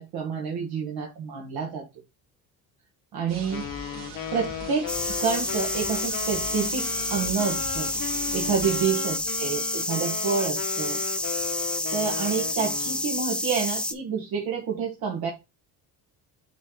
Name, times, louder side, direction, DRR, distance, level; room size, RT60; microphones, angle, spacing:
voice 1, 0.0-1.8 3.1-3.7 4.3-7.9 8.3-11.4 11.9-15.3, right 6 dB, 65° right, -1 dB, 1.5 m, -29 dB
sound 1, 3.3-8.8, right 4 dB, 45° right, 2.1 m, -41 dB
Wind instrument woodwind instrument, 3.5-13.1, left 13 dB, 60° left, 0.8 m, -36 dB
sound 2, 4.9-13.9, left 1 dB, 5° left, 0.4 m, -29 dB
8.0 x 3.2 x 3.7 m, 0.25 s
cardioid pair, 125°, 39 cm